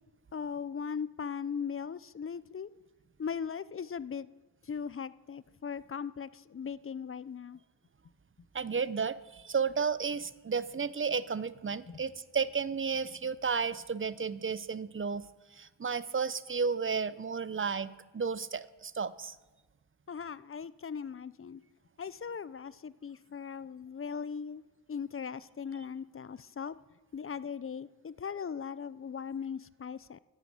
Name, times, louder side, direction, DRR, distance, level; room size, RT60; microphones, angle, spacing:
voice 1, 0.3-2.7 3.2-4.3 4.6-7.6 11.9-12.0 20.1-21.6 22.0-26.8 27.1-30.2, left 6 dB, 30° left, 18 dB, 0.5 m, -39 dB
voice 2, 8.5-15.2 15.5-19.4, right 5 dB, 30° right, 16 dB, 0.7 m, -33 dB
11.0 x 8.9 x 7.8 m, 1.2 s
cardioid pair, 50°, 43 cm